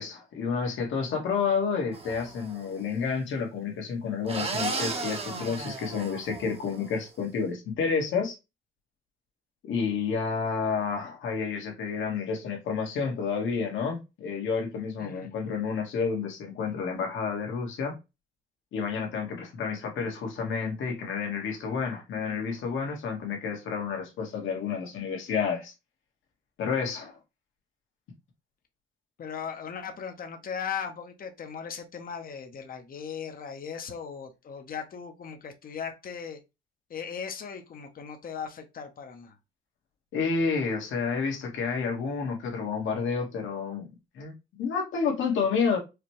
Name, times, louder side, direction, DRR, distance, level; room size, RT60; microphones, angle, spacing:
voice 1, 0.0-8.3 9.6-17.9 18.7-25.7 26.6-27.2 40.1-43.9 44.1-44.3 44.6-45.8, left 5 dB, 75° left, 1.5 m, -30 dB
sound 1, 1.9-2.6 4.2-6.9, right 3 dB, 30° right, 0.9 m, -35 dB
voice 2, 15.0-15.3 29.2-36.4 36.9-39.4, left 7 dB, 45° left, 0.8 m, -38 dB
4.8 x 2.2 x 3.0 m
cardioid pair, 90°, 20 cm